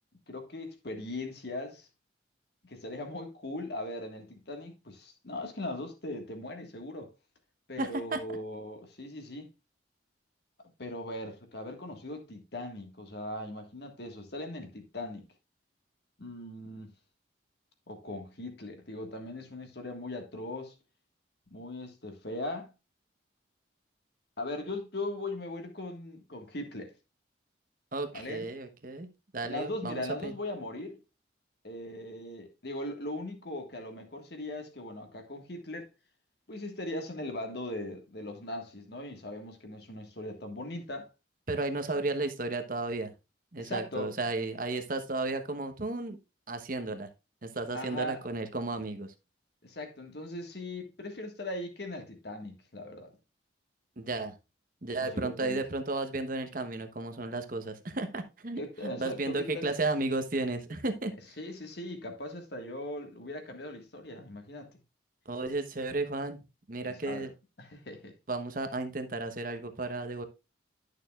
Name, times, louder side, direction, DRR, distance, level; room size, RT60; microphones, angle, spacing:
voice 1, 0.3-1.9 2.6-7.1 7.7-9.5 10.8-15.3 16.2-16.9 17.9-20.7 21.5-22.7 24.4-26.9 28.1-28.5 29.4-31.0 31.6-35.9 36.5-41.1 43.6-44.1 47.7-48.2 49.6-53.1 55.0-55.6 58.6-59.7 61.4-64.7 66.8-67.3 67.6-68.1, left 1 dB, 55° left, 1.6 m, -39 dB
voice 2, 7.8-8.2 27.9-29.1 29.3-30.3 41.5-43.1 43.5-46.2 46.5-47.1 47.4-49.1 54.0-54.3 54.8-61.1 65.3-66.4 66.7-67.3 68.3-70.2, right 2 dB, 45° right, 1.1 m, -33 dB
11.5 x 6.6 x 2.4 m
head